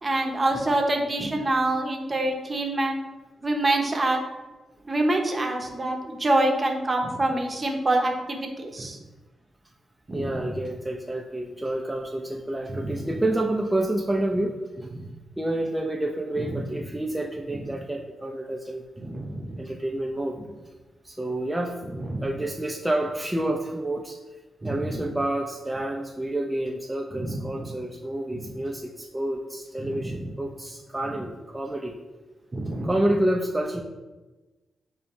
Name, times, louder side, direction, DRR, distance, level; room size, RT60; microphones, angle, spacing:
voice 1, 0.0-3.0 3.4-4.2 4.9-9.0 10.1-10.4 12.7-13.1 14.9-15.1 16.4-16.6 19.0-19.6 21.9-22.2 24.6-25.0 27.2-27.6 28.3-28.5 29.8-30.2 32.5-32.9, right 2 dB, 35° right, 2 dB, 0.8 m, -26 dB
voice 2, 10.1-14.6 15.4-18.8 19.6-20.4 21.0-21.8 22.2-24.2 24.6-31.9 32.8-33.8, right 1 dB, 10° right, 0 dB, 0.4 m, -28 dB
5.1 x 2.3 x 3.0 m, 1.2 s
supercardioid pair, 40°, 0 cm